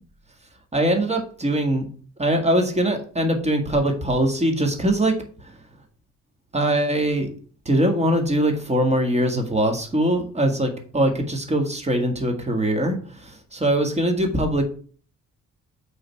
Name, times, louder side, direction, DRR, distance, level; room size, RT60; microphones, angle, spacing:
voice 1, 0.7-1.9 2.2-5.2 6.5-7.3 7.7-14.6, right 1 dB, 20° right, 4 dB, 1.9 m, -22 dB
6.5 x 4.0 x 5.7 m, 0.42 s
cardioid pair, 90°, 30 cm